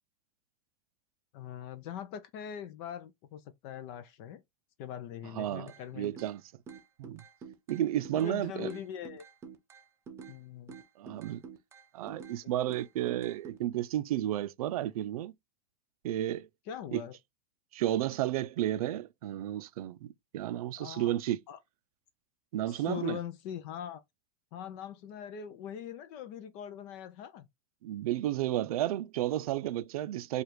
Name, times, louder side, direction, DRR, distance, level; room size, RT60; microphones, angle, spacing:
voice 1, 1.3-4.4 4.8-6.2 8.1-9.2 10.3-10.8 12.4-12.5 16.7-17.2 20.8-21.2 21.5-21.6 22.7-24.0 24.5-27.5, left 9 dB, 40° left, 0.4 m, -42 dB
voice 2, 5.3-6.4 7.0-7.2 7.7-8.7 11.0-11.4 11.9-15.3 16.0-16.5 16.9-17.0 17.7-21.4 22.5-23.2 27.8-30.4, right 13 dB, 85° right, 0.4 m, -32 dB
sound 1, 5.7-6.4 6.7-8.4 8.7-10.4 10.7-12.4 12.7-13.6, right 6 dB, 15° right, 0.6 m, -48 dB
4.8 x 2.4 x 3.1 m
supercardioid pair, 155°, 18 cm